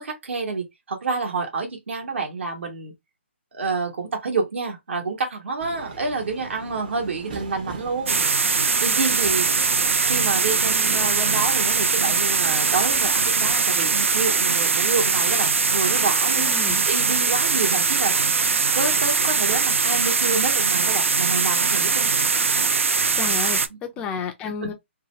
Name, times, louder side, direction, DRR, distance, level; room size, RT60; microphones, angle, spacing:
voice 1, 0.0-2.9 3.5-8.2 8.8-9.7 10.0-16.5 16.9-18.4 18.7-22.2 24.6-24.7, right 4 dB, 70° right, 1.2 m, -28 dB
Subway metro underground, 5.6-13.5, right 4 dB, 40° right, 0.7 m, -40 dB
sound 1, 8.1-23.7, right 5 dB, 90° right, 0.4 m, -21 dB
voice 2, 16.4-16.8 23.2-24.7, left 5 dB, 15° left, 0.3 m, -31 dB
2.8 x 2.2 x 2.9 m
hypercardioid pair, 150°, 7 cm